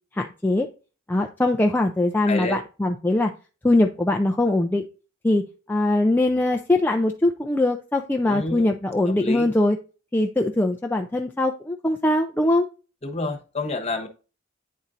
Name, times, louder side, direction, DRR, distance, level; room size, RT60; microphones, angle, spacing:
voice 1, 0.1-0.7 1.1-3.3 3.6-4.8 5.2-9.8 10.1-12.7, left 2 dB, 10° left, 2 dB, 0.4 m, -22 dB
voice 2, 2.3-2.6 8.2-8.7 9.2-9.5 13.0-14.1, left 2 dB, 30° left, 2 dB, 1.2 m, -28 dB
9.4 x 4.2 x 2.5 m, 0.34 s
head